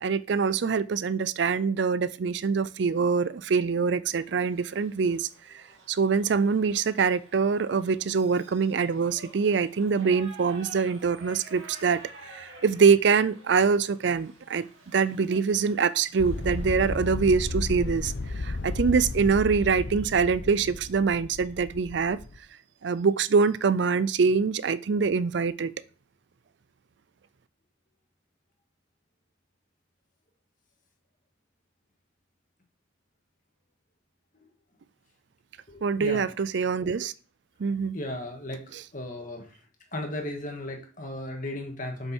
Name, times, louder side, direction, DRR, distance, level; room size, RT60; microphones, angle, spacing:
voice 1, 0.0-5.3 5.9-12.0 12.3-14.7 14.9-22.2 22.8-25.7 35.8-37.1 37.6-38.0 38.7-38.8, right 5 dB, 65° right, 0.4 m, -24 dB
Shout / Livestock farm animals working animals, 4.1-16.7, right 3 dB, 80° right, 2.1 m, -51 dB
sound 1, 16.2-22.4, left 2 dB, 70° left, 0.7 m, -33 dB
voice 2, 35.7-36.3 37.9-38.6 38.9-39.5 39.9-42.1, left 1 dB, 45° left, 1.9 m, -35 dB
7.1 x 6.4 x 4.5 m
head